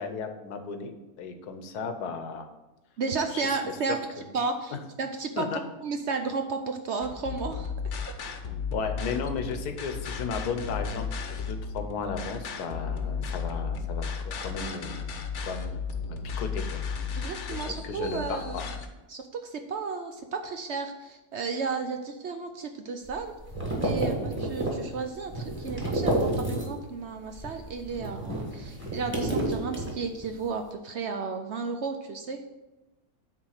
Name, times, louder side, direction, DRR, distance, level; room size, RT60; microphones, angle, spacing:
voice 1, 0.0-2.5 3.3-4.0 5.4-5.6 8.7-14.1 14.4-15.1 15.5-15.8 16.1-16.8 17.5-18.6 24.0-24.2, left 5 dB, 85° left, 7 dB, 1.4 m, -35 dB
voice 2, 3.0-4.0 4.3-5.5 5.8-7.7 17.1-18.7 19.1-23.3 23.8-32.4, right 4 dB, 65° right, 6 dB, 0.7 m, -33 dB
sound 1, 7.0-18.9, left 5 dB, 60° left, 1.0 m, -34 dB
sound 2, 23.0-27.0 27.3-30.4, right 1 dB, 10° right, 1.5 m, -30 dB
8.8 x 3.8 x 6.4 m, 1.0 s
omnidirectional pair, 1.6 m